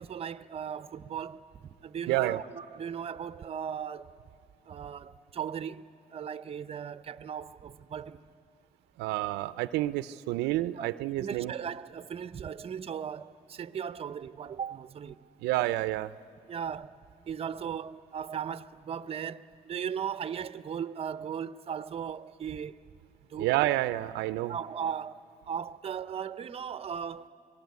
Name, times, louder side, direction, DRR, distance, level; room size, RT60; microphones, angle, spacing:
voice 1, 0.0-1.5 1.8-4.1 4.7-8.2 10.8-15.2 16.5-16.9 17.3-22.8 23.3-23.5 24.5-25.2 25.5-27.3, right 8 dB, 35° right, 0.7 m, -37 dB
voice 2, 2.1-2.4 9.0-11.5 15.4-16.1 23.4-24.5, right 16 dB, 90° right, 0.6 m, -29 dB
26.5 x 21.5 x 9.5 m
cardioid pair, 110°, 17 cm